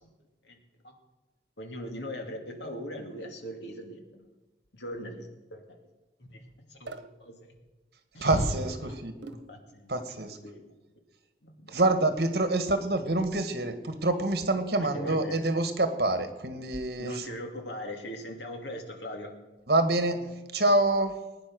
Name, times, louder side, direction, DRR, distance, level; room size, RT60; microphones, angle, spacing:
voice 1, 1.6-4.2 4.7-5.6 6.3-6.4 6.7-6.9 7.2-7.5 8.1-8.4 8.8-8.9 9.5-9.9 10.4-10.6 11.4-11.7 14.8-15.4 17.0-19.3, equal, 80° left, 3 dB, 2.6 m, -40 dB
sound 1, 6.9-7.1 9.2-9.6, right 2 dB, 85° right, 1.2 m, -42 dB
voice 2, 8.2-9.1 9.9-10.4 11.7-17.3 19.7-21.1, right 2 dB, 60° right, 8 dB, 1.7 m, -26 dB
20.5 x 9.8 x 6.3 m, 1.1 s
head